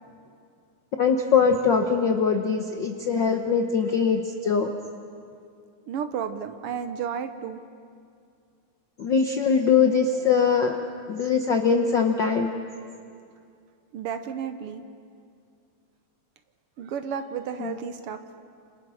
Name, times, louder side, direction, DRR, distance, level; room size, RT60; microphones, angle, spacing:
voice 1, 1.0-4.7 9.0-10.8 11.1-12.5 17.6-17.7, left 6 dB, 70° left, 4 dB, 1.0 m, -22 dB
voice 2, 5.9-7.6 13.9-14.8 16.8-18.2, right 7 dB, 70° right, 8 dB, 1.3 m, -32 dB
29.0 x 27.0 x 6.4 m, 2.3 s
omnidirectional pair, 3.7 m